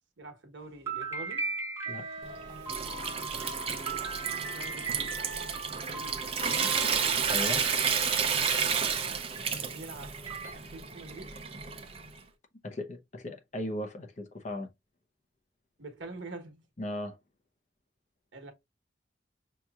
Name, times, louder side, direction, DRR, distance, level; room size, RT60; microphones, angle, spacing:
voice 1, 0.2-1.5 3.8-5.2 5.9-6.9 9.0-10.2 10.4-11.4 15.8-16.6 18.3-18.5, right 2 dB, 85° right, 1.1 m, -46 dB
sound 1, 0.9-8.3 9.7-9.8 10.3-10.5, right 3 dB, 15° right, 1.7 m, -38 dB
sound 2, 1.8-7.4, right 3 dB, 70° right, 0.7 m, -50 dB
Water tap faucet / Sink (filling or washing) / Trickle dribble, 2.2-12.2, right 6 dB, 30° right, 0.5 m, -31 dB
voice 2, 7.3-7.6 12.6-14.7 16.8-17.2, left 1 dB, 40° left, 0.7 m, -37 dB
5.7 x 2.9 x 2.3 m
head